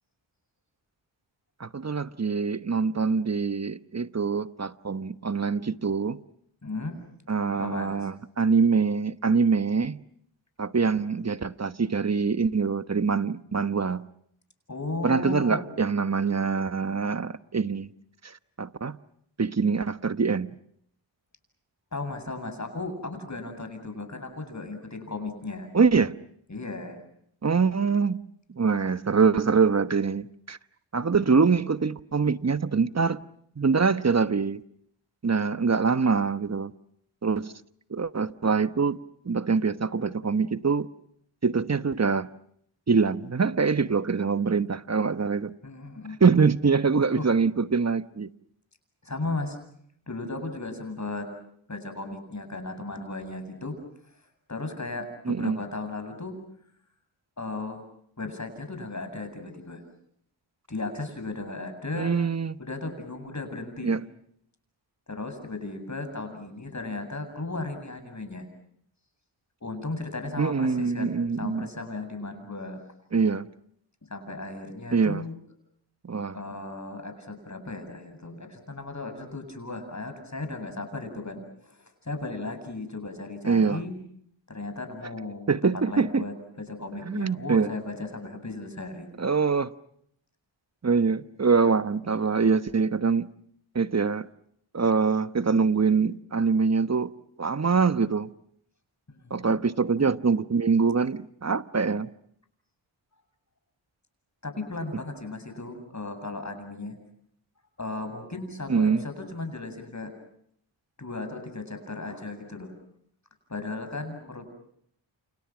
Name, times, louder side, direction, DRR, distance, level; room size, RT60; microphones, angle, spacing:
voice 1, 1.6-6.2 7.3-10.0 10.6-14.0 15.0-17.9 18.2-19.0 19.4-20.5 25.7-26.2 27.4-28.2 28.5-30.6 30.9-33.2 33.6-34.6 35.2-36.7 37.2-37.5 37.9-39.0 39.2-40.9 41.4-42.3 42.9-45.5 46.2-48.3 55.2-55.6 62.0-62.6 63.8-64.0 70.4-71.7 73.1-73.5 74.9-75.2 76.0-76.4 83.4-83.8 85.5-86.2 87.0-87.7 89.2-89.7 90.8-93.3 93.7-94.3 94.7-97.1 97.4-98.3 99.3-102.1 108.7-109.0, right 5 dB, 35° right, 1.2 m, -24 dB
voice 2, 6.6-7.0 7.5-8.1 14.7-15.7 21.9-25.7 26.5-27.0 45.6-46.2 47.1-47.3 49.0-49.6 50.1-51.3 51.7-53.8 54.5-56.4 57.4-57.8 58.2-59.8 60.7-62.1 62.6-64.0 65.1-68.5 69.6-72.8 74.0-75.3 76.3-84.0 84.5-89.1 99.1-99.6 100.0-100.1 104.4-107.0 107.8-110.1 111.0-112.7 113.5-114.5, left 2 dB, 35° left, 7.9 m, -36 dB
29.5 x 29.0 x 6.2 m
cardioid pair, 45°, 48 cm